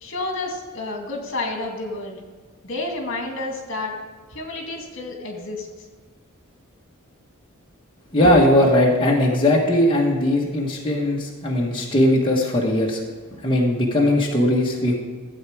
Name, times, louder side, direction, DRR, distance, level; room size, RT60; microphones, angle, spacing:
voice 1, 0.0-2.2 2.6-3.9 4.3-5.7, left 2 dB, 60° left, 2 dB, 2.1 m, -30 dB
voice 2, 8.1-13.0 13.4-15.0, left 1 dB, 25° left, -3 dB, 1.3 m, -19 dB
13.5 x 8.1 x 4.8 m, 1.4 s
head